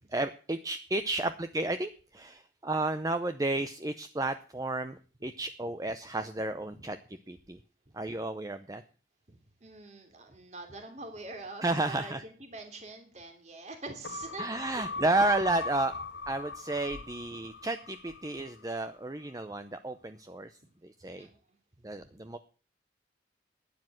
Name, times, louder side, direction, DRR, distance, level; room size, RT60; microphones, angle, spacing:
voice 1, 0.1-7.0 7.3-7.6 7.9-8.8 11.6-12.2 14.4-15.9 16.3-20.5 21.0-21.3 21.8-22.4, right 2 dB, 20° right, 10 dB, 0.6 m, -32 dB
voice 2, 9.3-14.5 14.7-14.8 21.0-21.4 21.8-22.2, right 2 dB, 40° right, 5 dB, 3.1 m, -45 dB
sound 1, 14.0-18.7 19.1-19.2, left 3 dB, 75° left, 0.8 m, -40 dB
12.0 x 9.7 x 7.8 m, 0.39 s
head